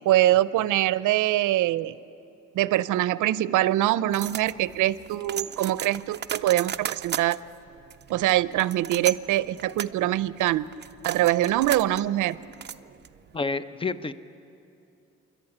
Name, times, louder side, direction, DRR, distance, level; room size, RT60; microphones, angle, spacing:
voice 1, 0.1-2.0 2.6-7.4 8.1-10.7 11.0-12.4, right 14 dB, 80° right, 17 dB, 0.6 m, -23 dB
sound 1, 4.1-13.3, right 8 dB, 35° right, 0.5 m, -36 dB
voice 2, 13.3-14.1, left 3 dB, 20° left, 14 dB, 0.7 m, -29 dB
26.5 x 11.5 x 9.9 m, 2.7 s
cardioid pair, 90°, 30 cm